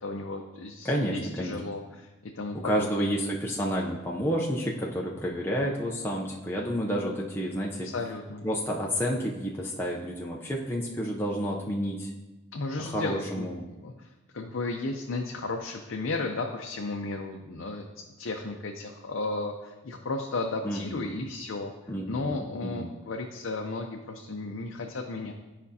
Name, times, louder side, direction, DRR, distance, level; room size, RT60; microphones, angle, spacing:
voice 1, 0.0-3.1 7.8-8.5 12.5-13.5 13.8-14.1 14.3-17.8 18.2-21.7 22.1-25.3, left 3 dB, 70° left, 1 dB, 0.5 m, -34 dB
voice 2, 0.8-1.6 2.6-7.9 8.4-12.1 12.8-13.6 20.6-21.2 21.9-22.9, equal, 10° left, -3 dB, 0.5 m, -30 dB
11.0 x 5.0 x 2.7 m, 1.1 s
head